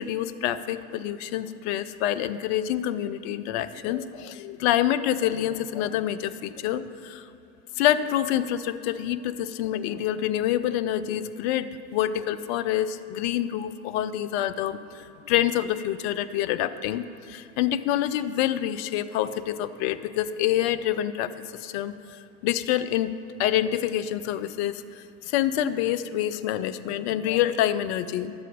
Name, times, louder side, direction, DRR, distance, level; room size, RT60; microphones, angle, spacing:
voice 1, 0.0-7.3 7.8-23.1 23.4-28.3, left 11 dB, 45° left, 13 dB, 0.6 m, -27 dB
11.0 x 7.5 x 5.2 m, 2.8 s
hypercardioid pair, 100°, 45 cm